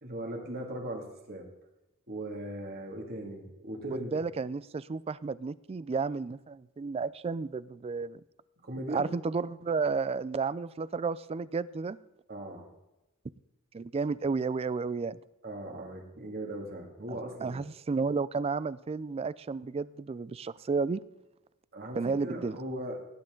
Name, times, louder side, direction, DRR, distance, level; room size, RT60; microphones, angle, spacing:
voice 1, 0.0-1.5 2.1-4.2 8.6-9.0 12.3-12.7 15.4-17.6 21.7-23.0, right 1 dB, 45° right, 1 dB, 2.3 m, -39 dB
voice 2, 4.1-8.2 8.9-12.0 13.7-15.2 17.1-21.0 22.0-22.6, right 4 dB, 25° right, 19 dB, 0.3 m, -32 dB
18.0 x 10.0 x 3.8 m, 0.96 s
head